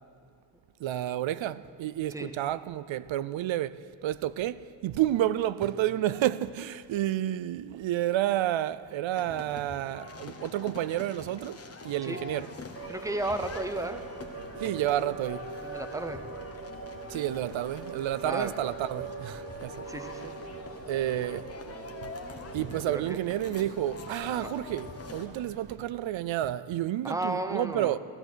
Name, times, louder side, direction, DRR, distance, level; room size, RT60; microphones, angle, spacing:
voice 1, 0.8-12.5 14.6-15.4 17.1-19.9 20.9-21.5 22.0-22.1 22.5-28.0, right 13 dB, 90° right, 0.5 m, -30 dB
sound 1, 9.1-25.3, left 4 dB, 30° left, 1.1 m, -44 dB
sound 2, 12.8-25.8, right 5 dB, 50° right, 1.0 m, -43 dB
voice 2, 12.9-14.1 15.6-16.2 18.2-18.5 19.9-20.3 22.9-23.2 24.4-24.5 27.0-28.0, right 1 dB, 5° right, 0.8 m, -34 dB
16.0 x 13.5 x 6.2 m
wide cardioid pair, 155°, 45 cm